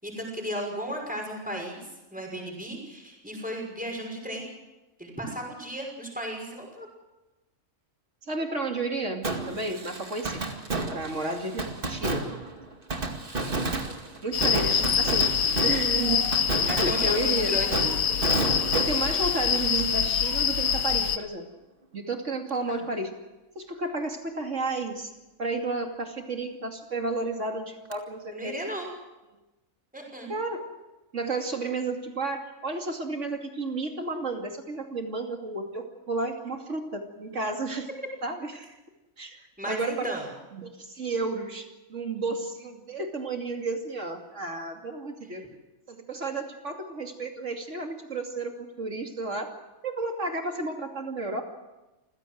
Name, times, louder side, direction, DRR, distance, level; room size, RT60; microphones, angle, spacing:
voice 1, 0.0-4.5 5.0-6.9 14.5-14.9 16.7-17.9 22.7-22.9 28.3-28.9 29.9-30.3 39.6-40.3, equal, 5° right, 0 dB, 5.9 m, -35 dB
voice 2, 8.3-10.4 10.9-12.3 14.2-15.3 15.6-16.3 16.6-17.5 18.7-21.4 21.9-23.1 23.5-25.1 25.4-28.5 30.3-30.6 31.1-37.9 38.2-38.7 39.2-40.2 40.5-45.4 45.9-49.5 49.8-51.4, right 3 dB, 60° right, 3 dB, 3.0 m, -32 dB
Fireworks, 9.2-20.9 21.2-21.3 27.9-28.0, right 2 dB, 40° right, 2.3 m, -32 dB
sound 1, 14.3-21.2, left 8 dB, 85° left, 1.5 m, -25 dB
27.5 x 16.0 x 7.9 m, 1.1 s
omnidirectional pair, 1.4 m